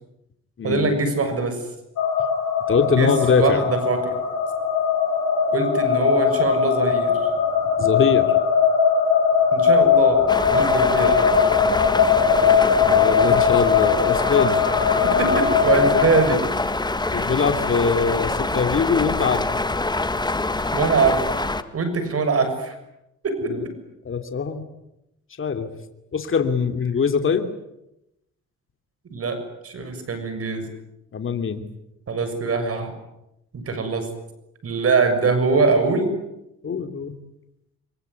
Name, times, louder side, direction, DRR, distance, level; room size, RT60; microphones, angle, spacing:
voice 1, 0.6-1.6 3.0-4.2 5.5-7.1 9.5-11.3 15.0-16.4 17.1-17.3 20.7-21.2 21.7-22.7 23.2-23.7 29.1-30.7 32.1-32.9 33.5-34.1 34.6-36.1, right 4 dB, 50° right, 9 dB, 6.8 m, -23 dB
sound 1, 2.0-16.3, left 7 dB, 70° left, 7.0 m, -20 dB
voice 2, 2.7-3.6 7.8-8.3 11.6-11.8 12.8-14.7 17.1-19.5 23.5-23.6 24.0-24.6 25.4-25.7 26.1-27.5 31.1-31.6 36.6-37.1, left 5 dB, 45° left, 7 dB, 2.9 m, -22 dB
sound 2, 10.3-21.6, left 2 dB, 15° left, 1.8 m, -25 dB
24.5 x 23.5 x 9.6 m, 0.86 s
cardioid pair, 90°, 30 cm